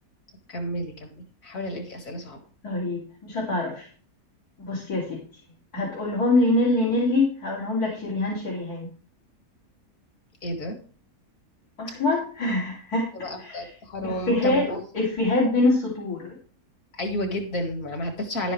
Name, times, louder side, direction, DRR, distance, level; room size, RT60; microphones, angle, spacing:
voice 1, 0.5-2.4 10.4-10.8 13.1-14.8 16.9-18.5, left 1 dB, 65° left, 3 dB, 2.6 m, -31 dB
voice 2, 2.6-3.9 4.6-5.2 5.7-8.9 11.8-13.1 13.4-13.6 14.0-14.7 14.9-16.3, left 2 dB, 85° left, -4 dB, 3.3 m, -24 dB
11.5 x 9.9 x 3.2 m, 0.40 s
omnidirectional pair, 1.6 m